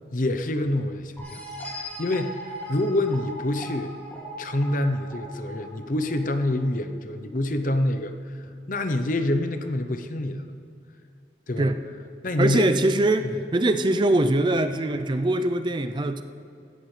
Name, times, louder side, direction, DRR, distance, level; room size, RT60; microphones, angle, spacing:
voice 1, 0.1-1.4 1.7-3.9 4.4-8.4 8.7-10.4 11.5-11.7 12.2-12.7, left 1 dB, 50° left, 8 dB, 0.7 m, -26 dB
sound 1, 1.2-6.6, equal, 10° left, 2.4 m, -39 dB
voice 2, 12.4-16.2, right 1 dB, 25° right, 9 dB, 0.4 m, -22 dB
17.0 x 14.0 x 3.3 m, 2.4 s
head